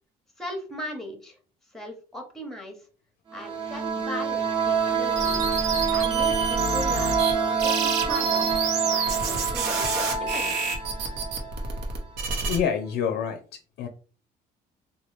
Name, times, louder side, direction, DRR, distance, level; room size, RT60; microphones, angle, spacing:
voice 1, 0.4-1.3 1.7-2.8 3.3-5.4 5.9-8.5 8.8-10.0 10.3-10.6, equal, ahead, 3 dB, 0.8 m, -38 dB
sound 1, 3.3-11.9, right 5 dB, 30° right, 0.7 m, -27 dB
sound 2, 5.1-7.3 7.6-12.6, right 4 dB, 85° right, 0.8 m, -29 dB
voice 2, 12.4-13.9, left 7 dB, 75° left, 6 dB, 0.4 m, -28 dB
2.9 x 2.2 x 3.2 m, 0.39 s
cardioid pair, 110°, 17 cm